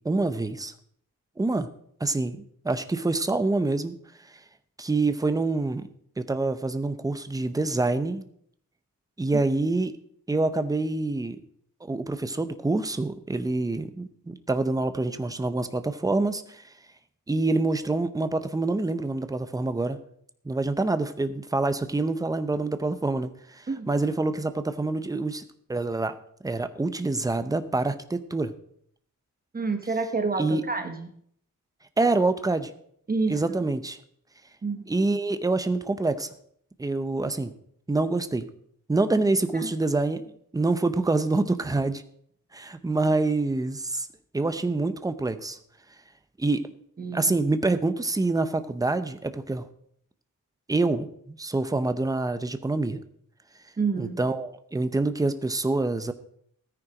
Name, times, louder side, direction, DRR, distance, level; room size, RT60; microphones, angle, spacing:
voice 1, 0.0-0.7 1.4-1.7 2.0-4.0 4.8-5.9 6.2-8.3 9.2-9.9 10.3-11.4 11.8-16.6 17.3-20.0 20.4-25.4 25.7-26.2 26.4-28.5 30.4-30.6 32.0-32.7 33.3-34.0 34.9-36.3 36.8-37.5 37.9-38.5 38.9-40.2 40.5-42.0 42.5-44.1 44.3-45.6 46.4-46.6 47.1-49.7 50.7-53.0 54.0-56.1, right 2 dB, 10° right, 10 dB, 0.7 m, -26 dB
voice 2, 29.5-31.1 33.1-33.4 34.6-34.8 39.6-39.7 47.0-47.4 53.8-54.2, right 4 dB, 25° right, 7 dB, 1.1 m, -28 dB
13.5 x 9.7 x 4.9 m, 0.66 s
wide cardioid pair, 170°, 33 cm